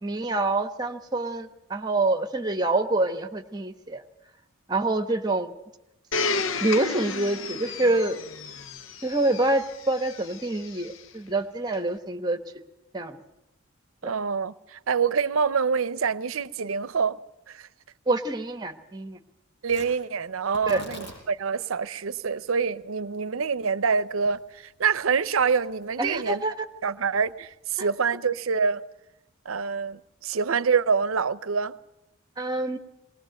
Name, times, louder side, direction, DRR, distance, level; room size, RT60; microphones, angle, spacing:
voice 1, 0.0-4.0 4.7-5.5 6.6-8.2 9.0-12.4 12.9-13.2 14.0-14.1 18.1-19.2 20.7-20.8 26.0-26.5 27.8-27.9 32.4-32.8, right 2 dB, 20° right, 1.1 m, -26 dB
Domestic sounds home sounds, 6.1-11.0 11.7-11.8, left 4 dB, 70° left, 0.7 m, -32 dB
voice 2, 14.0-17.2 17.5-17.7 19.6-26.4 26.8-28.8 29.5-31.8, right 5 dB, 85° right, 0.7 m, -26 dB
Tearing, 19.6-28.0, equal, 55° left, 6.7 m, -49 dB
20.5 x 19.5 x 7.8 m
head